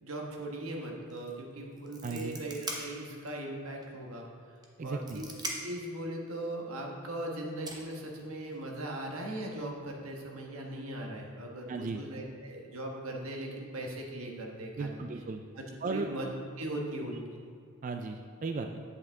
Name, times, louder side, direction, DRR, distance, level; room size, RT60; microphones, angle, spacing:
voice 1, 0.0-4.3 4.8-5.2 5.6-15.0 15.5-16.3 16.6-17.2, right 1 dB, 85° right, 0 dB, 1.4 m, -39 dB
sound 1, 1.1-1.3 1.6-3.4 3.8-3.9 4.6-5.9 7.0-7.1 7.7-8.7, right 2 dB, 20° right, 0.9 m, -41 dB
voice 2, 2.0-2.4 4.8-5.2 11.7-12.0 14.8-15.4 15.8-16.1 17.8-18.8, right 4 dB, 35° right, 5 dB, 0.3 m, -36 dB
8.3 x 7.8 x 3.6 m, 2.4 s
head